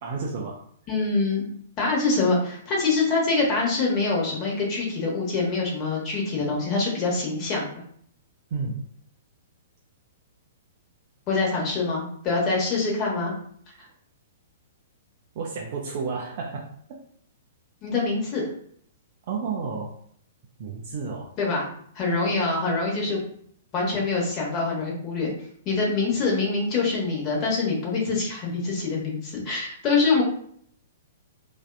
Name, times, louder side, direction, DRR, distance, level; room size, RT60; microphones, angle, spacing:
voice 1, 0.0-0.6 8.5-8.8 13.7-13.9 15.3-16.7 19.3-19.9 20.6-21.3, right 4 dB, 50° right, -1 dB, 0.4 m, -31 dB
voice 2, 0.9-1.5 1.8-7.8 11.3-13.4 17.8-18.4 21.4-21.7 21.9-23.3 23.7-25.3 25.6-30.2, left 3 dB, 30° left, -2 dB, 1.0 m, -25 dB
2.6 x 2.3 x 2.2 m, 0.63 s
figure-of-eight pair, 110°, 0 cm